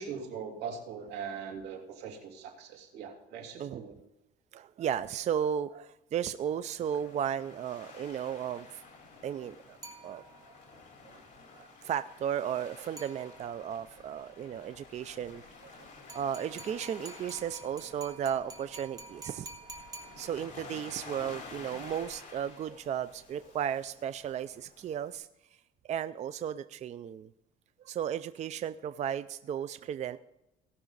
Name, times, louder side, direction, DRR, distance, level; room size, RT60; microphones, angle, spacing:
voice 1, 0.0-3.9, right 6 dB, 85° right, 1 dB, 2.7 m, -41 dB
voice 2, 4.5-8.8 9.2-9.8 10.0-10.5 11.0-11.2 11.5-19.5 20.2-25.3 25.8-27.3 27.8-30.2, right 9 dB, 45° right, 12 dB, 0.4 m, -35 dB
Waves surf, 6.4-25.2, left 4 dB, 45° left, 3.4 m, -51 dB
sound 1, 9.8-10.7 13.0-13.7 16.1-20.7, right 3 dB, 20° right, 2.1 m, -49 dB
18.0 x 6.1 x 4.0 m, 0.91 s
cardioid pair, 110°, 17 cm